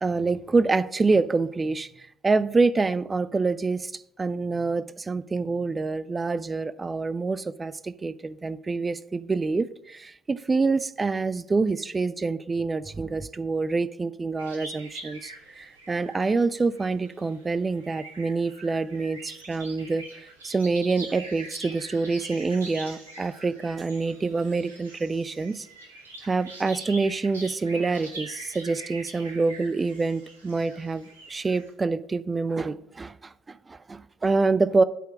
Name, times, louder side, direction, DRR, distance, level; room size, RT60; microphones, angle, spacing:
voice 1, 0.0-20.0 20.4-25.7 26.2-34.8, right 3 dB, 25° right, 0.4 m, -26 dB
sound 1, 14.4-31.7, right 2 dB, 80° right, 1.3 m, -44 dB
9.1 x 4.4 x 7.1 m
figure-of-eight pair, 50°, 0 cm